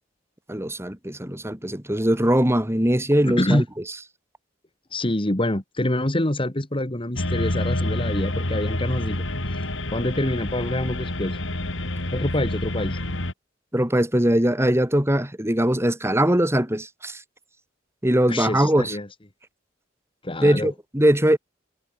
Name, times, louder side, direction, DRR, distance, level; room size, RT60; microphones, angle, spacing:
voice 1, 0.5-3.6 13.7-17.2 18.0-19.0 20.4-21.4, right 1 dB, 15° right, 3.3 m, -21 dB
voice 2, 3.3-3.6 4.9-9.2 9.5-9.6 9.9-11.4 12.1-13.0 18.3-19.1 20.2-20.7, left 1 dB, 30° left, 2.0 m, -26 dB
sound 1, 7.2-13.3, left 1 dB, 75° left, 3.6 m, -28 dB
head